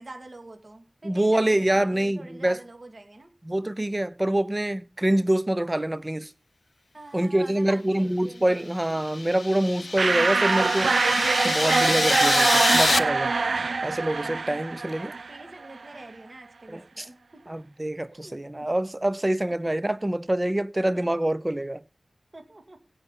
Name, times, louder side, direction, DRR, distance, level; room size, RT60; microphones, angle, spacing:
voice 1, 0.0-3.3 5.1-5.2 6.9-9.2 9.8-10.7 13.0-13.7 15.3-17.6 18.1-18.7 19.4-19.8 20.8-21.2 22.3-22.8, right 2 dB, 40° right, 2.3 m, -46 dB
voice 2, 1.0-2.6 3.4-6.3 7.1-11.0 11.4-13.3 13.8-15.1 16.7-17.1 17.5-21.8, right 1 dB, 20° right, 0.7 m, -25 dB
sound 1, 8.8-13.0, left 3 dB, 55° left, 0.7 m, -27 dB
sound 2, 10.0-15.5, right 4 dB, 75° right, 0.5 m, -24 dB
16.5 x 5.6 x 5.7 m
wide cardioid pair, 90°, 0 cm